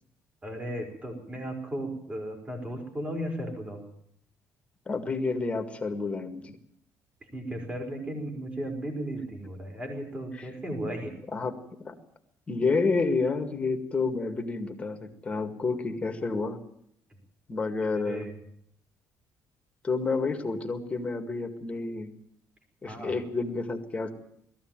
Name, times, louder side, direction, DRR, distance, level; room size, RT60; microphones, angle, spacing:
voice 1, 0.4-3.8 7.3-11.1 18.1-18.4 22.8-23.1, right 1 dB, 20° right, 2 dB, 4.4 m, -35 dB
voice 2, 4.9-6.5 11.3-11.9 12.5-16.6 17.5-18.3 19.8-22.1 22.8-24.1, left 4 dB, 20° left, 6 dB, 2.0 m, -29 dB
20.0 x 14.5 x 9.0 m, 0.69 s
cardioid pair, 145°, 6 cm